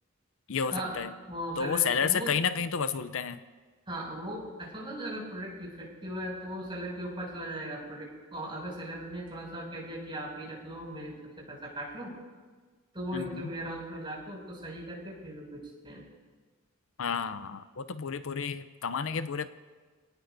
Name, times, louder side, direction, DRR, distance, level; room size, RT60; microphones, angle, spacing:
voice 1, 0.5-1.1 1.6-3.4 13.1-13.5 17.0-19.5, left 6 dB, 70° left, 11 dB, 0.6 m, -31 dB
voice 2, 1.3-2.3 3.9-11.1 11.5-12.1 12.9-16.0, right 1 dB, 25° right, -4 dB, 6.6 m, -38 dB
29.5 x 18.5 x 2.7 m, 1.4 s
head